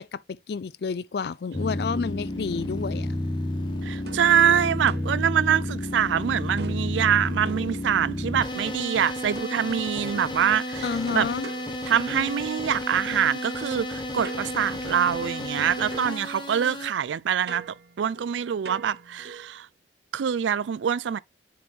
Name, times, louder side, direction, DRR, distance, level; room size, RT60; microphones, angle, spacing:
voice 1, 0.0-3.1 10.8-11.5, left 5 dB, 60° left, 0.4 m, -30 dB
sound 1, 1.5-16.9, left 1 dB, 25° left, 1.4 m, -31 dB
voice 2, 3.8-11.3 11.8-19.7 20.1-21.2, right 8 dB, 85° right, 0.4 m, -25 dB
sound 2, 4.1-6.1 6.6-8.4 9.3-12.6 14.2-15.6 15.9-19.6, right 4 dB, 65° right, 0.9 m, -45 dB
7.3 x 4.4 x 3.4 m
head